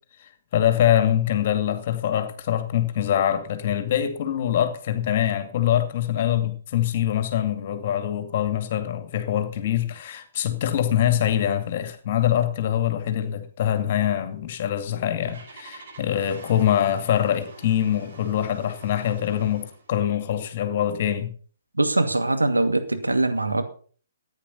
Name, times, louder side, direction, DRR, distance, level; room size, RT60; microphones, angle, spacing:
voice 1, 0.5-21.3, left 10 dB, 40° left, 9 dB, 2.3 m, -24 dB
Engine starting, 14.8-19.9, right 3 dB, 50° right, 5.5 m, -46 dB
voice 2, 21.8-23.6, right 2 dB, 80° right, 7 dB, 2.2 m, -22 dB
14.5 x 9.7 x 5.7 m, 0.44 s
figure-of-eight pair, 125°, 0 cm